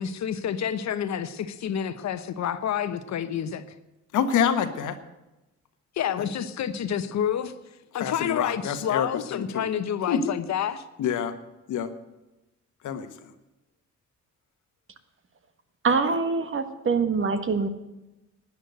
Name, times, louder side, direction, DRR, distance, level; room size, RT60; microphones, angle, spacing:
voice 1, 0.0-3.6 6.0-7.5 7.9-10.8, left 9 dB, 65° left, 1.1 m, -29 dB
voice 2, 4.1-4.9 8.0-9.6 10.1-10.2 11.0-11.3 11.7-11.9 12.8-13.1, left 8 dB, 80° left, 1.4 m, -26 dB
voice 3, 15.8-17.7, right 4 dB, 45° right, 1.5 m, -24 dB
12.0 x 9.7 x 8.1 m
cardioid pair, 90°, 30 cm